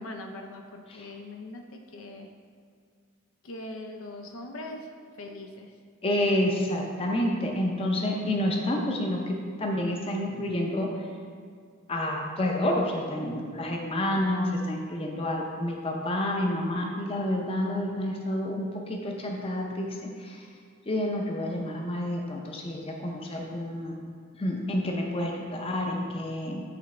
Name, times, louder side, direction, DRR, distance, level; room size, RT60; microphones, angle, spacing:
voice 1, 0.0-2.3 3.4-4.9 5.2-5.7, left 1 dB, 70° left, 4 dB, 0.5 m, -41 dB
voice 2, 6.0-10.9 11.9-20.5 20.9-24.0 24.4-26.6, left 1 dB, 25° left, 0 dB, 0.6 m, -29 dB
8.5 x 3.1 x 4.2 m, 2.1 s
head